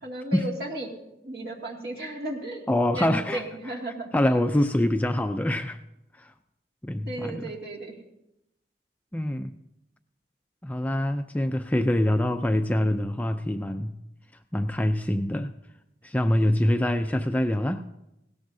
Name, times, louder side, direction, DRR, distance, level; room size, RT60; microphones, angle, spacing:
voice 1, 0.0-0.9 1.2-2.6 3.0-4.1 7.1-8.0, right 1 dB, 55° right, -2 dB, 2.3 m, -34 dB
voice 2, 2.7-3.4 4.1-5.8 6.2-6.3 6.8-7.5 9.1-9.5 10.6-13.9 14.5-15.6 16.0-17.9, left 1 dB, 10° left, 7 dB, 0.4 m, -25 dB
19.0 x 17.0 x 2.7 m, 0.89 s
head